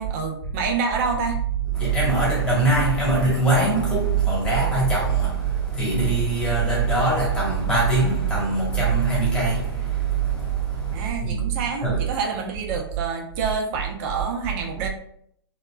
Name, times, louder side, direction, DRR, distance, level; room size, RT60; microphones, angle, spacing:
voice 1, 0.0-1.4 10.9-14.9, right 5 dB, 35° right, 0.5 m, -27 dB
voice 2, 1.7-11.4 11.8-12.0, right 3 dB, 5° left, 1.2 m, -22 dB
2.8 x 2.1 x 2.2 m
hypercardioid pair, 120°, 13 cm